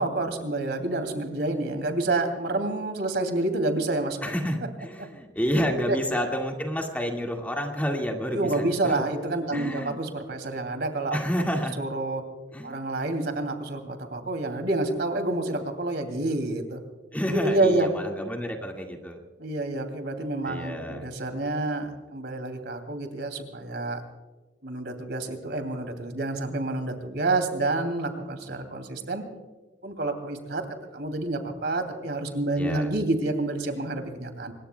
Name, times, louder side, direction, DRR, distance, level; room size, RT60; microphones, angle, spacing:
voice 1, 0.0-4.2 5.7-6.0 8.3-11.2 11.8-12.2 12.6-16.8 17.3-17.9 19.4-24.0 24.6-29.2 29.8-30.6 30.9-34.5, right 2 dB, 65° right, 6 dB, 2.7 m, -28 dB
voice 2, 4.2-9.0 9.5-10.0 11.1-11.8 12.5-12.8 17.1-19.2 20.4-21.1 32.6-32.9, equal, 10° left, 2 dB, 1.9 m, -29 dB
26.0 x 22.0 x 2.3 m, 1.3 s
head